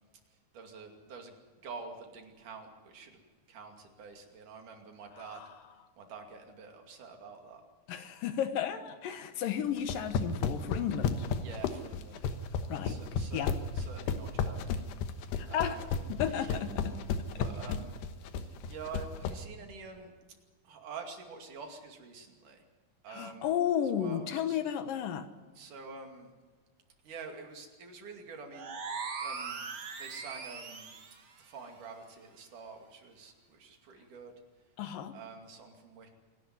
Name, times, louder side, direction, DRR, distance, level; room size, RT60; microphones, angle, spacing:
voice 1, 0.3-1.3 1.6-3.2 3.5-5.4 6.0-7.6 11.4-12.2 12.8-14.8 15.5-15.9 16.3-16.6 17.4-18.0 18.4-20.1 20.6-22.6 23.0-23.5 24.0-24.6 25.6-26.3 27.0-28.7 29.2-29.7 30.0-30.9 31.4-34.3 35.1-36.1, right 5 dB, 55° right, 3 dB, 3.8 m, -47 dB
voice 2, 7.9-11.3 12.7-13.0 13.3-13.5 15.4-15.8 16.1-16.7 17.3-17.5 23.1-25.3 34.8-35.1, left 9 dB, 70° left, 9 dB, 2.5 m, -33 dB
sound 1, 9.8-19.4, left 6 dB, 90° left, 3.3 m, -32 dB
sound 2, 28.5-31.2, right 5 dB, 75° right, 0.9 m, -40 dB
26.5 x 12.5 x 9.6 m, 1.3 s
omnidirectional pair, 4.6 m